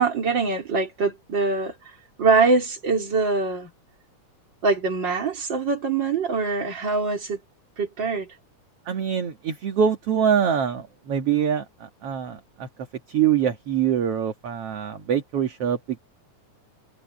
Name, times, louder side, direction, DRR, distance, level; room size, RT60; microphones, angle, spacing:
voice 1, 0.0-1.7 2.2-3.7 4.6-7.4 7.8-8.3, right 4 dB, 35° right, 4.0 m, -23 dB
voice 2, 8.9-12.7 13.1-16.0, right 8 dB, 50° right, 2.4 m, -24 dB
omnidirectional pair, 3.7 m